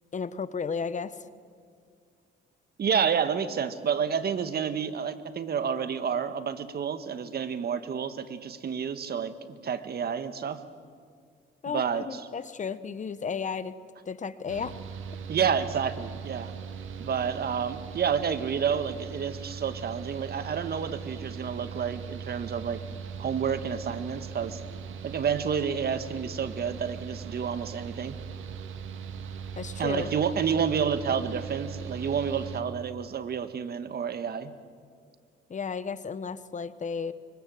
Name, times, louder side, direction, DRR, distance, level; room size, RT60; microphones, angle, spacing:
voice 1, 0.1-1.2 11.6-13.8 14.0-14.8 29.6-30.1 35.5-37.1, left 6 dB, 40° left, 14 dB, 1.2 m, -33 dB
voice 2, 2.8-10.6 11.7-12.2 15.3-16.5 17.0-22.8 23.2-24.6 25.0-28.2 29.8-34.5, right 7 dB, 55° right, 11 dB, 1.7 m, -29 dB
Mechanical fan, 14.5-32.6, right 6 dB, 80° right, 2.1 m, -40 dB
24.0 x 24.0 x 7.7 m, 2.1 s
cardioid pair, 90°, 20 cm